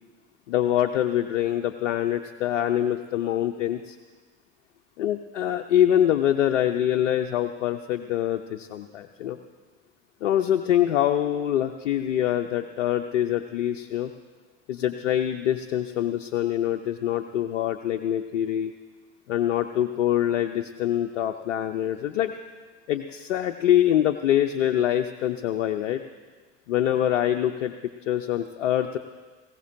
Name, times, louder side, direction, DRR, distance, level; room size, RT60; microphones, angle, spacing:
voice 1, 0.5-4.0 5.0-9.4 10.2-14.1 14.7-18.7 19.3-22.3 22.9-26.0 26.7-27.7 28.1-29.0, left 11 dB, 70° left, 6 dB, 0.7 m, -24 dB
20.0 x 17.0 x 2.6 m, 1.4 s
figure-of-eight pair, 65°, 37 cm